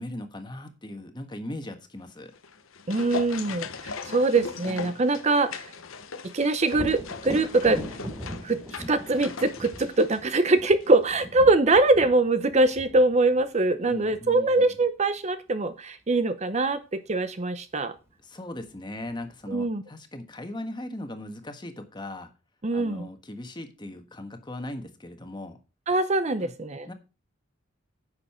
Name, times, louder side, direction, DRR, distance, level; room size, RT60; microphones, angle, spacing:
voice 1, 0.0-2.3 13.8-14.8 18.2-22.3 22.7-25.6 26.4-26.5 26.9-27.0, left 1 dB, 20° left, 6 dB, 1.4 m, -39 dB
sound 1, 2.3-10.9 11.2-11.3, left 5 dB, 85° left, 1.0 m, -39 dB
voice 2, 2.9-5.7 6.3-7.8 8.4-17.9 19.5-19.8 22.6-23.1 25.9-26.9, right 2 dB, 35° right, 11 dB, 0.6 m, -23 dB
Thunder, 6.7-14.4 18.0-18.1 18.6-19.5, equal, 10° right, 2.8 m, -40 dB
10.5 x 6.6 x 4.3 m, 0.31 s
head